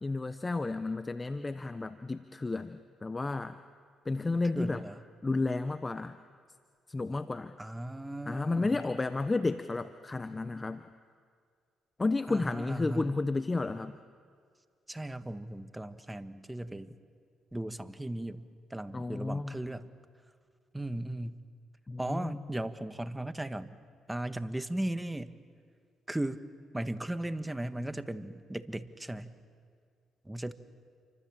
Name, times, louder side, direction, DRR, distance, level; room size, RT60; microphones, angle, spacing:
voice 1, 0.0-3.6 4.0-4.8 5.2-6.2 6.9-7.6 8.3-10.8 12.0-14.0 18.9-19.6 21.9-22.4, left 3 dB, 25° left, 11 dB, 0.9 m, -32 dB
voice 2, 4.5-5.0 7.6-8.8 12.3-13.1 14.9-17.0 17.5-19.9 20.7-21.4 22.0-23.7 24.1-25.3 26.1-26.4 26.7-29.3 30.2-30.5, right 1 dB, 10° right, 10 dB, 1.5 m, -37 dB
29.0 x 25.0 x 7.4 m, 2.1 s
supercardioid pair, 60°, 0 cm